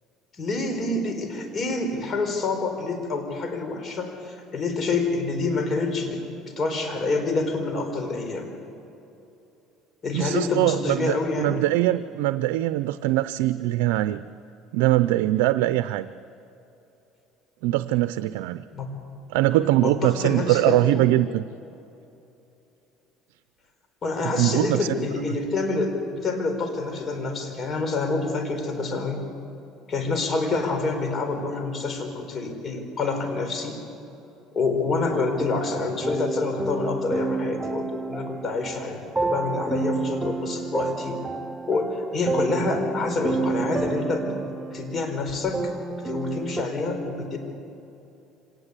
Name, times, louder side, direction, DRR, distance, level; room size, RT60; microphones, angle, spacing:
voice 1, 0.4-6.2 6.6-8.5 10.0-11.7 18.7-18.9 19.8-21.1 24.0-29.3 29.9-33.8 34.5-41.2 41.7-44.4 44.7-45.6 45.9-47.4, left 3 dB, 35° left, 5 dB, 4.4 m, -27 dB
voice 2, 10.1-14.2 14.7-16.1 17.6-18.6 19.3-21.4 24.2-25.1, right 15 dB, 90° right, 12 dB, 0.5 m, -22 dB
sound 1, 35.1-46.6, right 3 dB, 15° right, 0.7 m, -30 dB
25.0 x 19.0 x 8.3 m, 2.9 s
cardioid pair, 110°, 0 cm